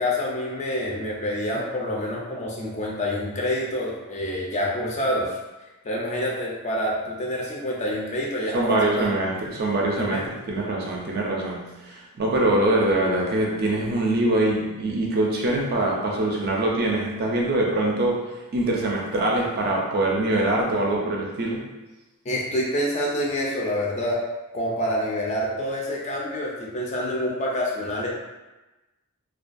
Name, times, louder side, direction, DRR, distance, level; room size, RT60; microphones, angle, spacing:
voice 1, 0.0-5.3 5.8-9.1 10.0-10.2 22.2-24.2 24.5-28.1, left 1 dB, 30° left, -3 dB, 0.4 m, -27 dB
voice 2, 8.5-21.7, right 1 dB, 45° right, -2 dB, 0.4 m, -24 dB
2.3 x 2.2 x 2.5 m, 1.1 s
head